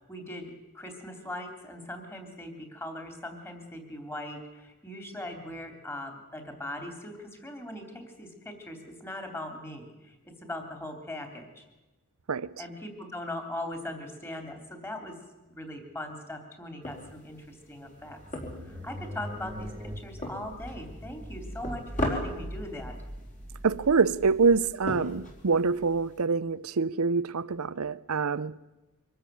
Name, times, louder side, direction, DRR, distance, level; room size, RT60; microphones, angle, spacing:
voice 1, 0.0-11.6 12.6-18.2 18.6-23.0, left 1 dB, 10° left, 3.2 m, -40 dB
sound 1, 16.8-26.2, left 1 dB, 35° left, 4.5 m, -40 dB
sound 2, 17.6-25.8, equal, 15° right, 1.5 m, -42 dB
voice 2, 23.6-28.6, right 4 dB, 75° right, 0.6 m, -25 dB
24.5 x 13.5 x 9.1 m
head